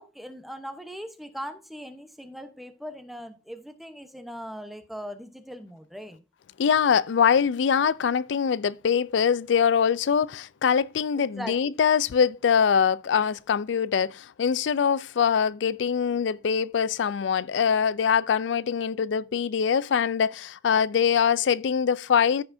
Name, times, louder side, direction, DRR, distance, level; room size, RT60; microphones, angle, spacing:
voice 1, 0.0-6.2 11.1-11.8, equal, ahead, 0.9 m, -40 dB
voice 2, 6.6-22.4, left 7 dB, 70° left, 0.4 m, -23 dB
14.5 x 5.7 x 2.7 m
head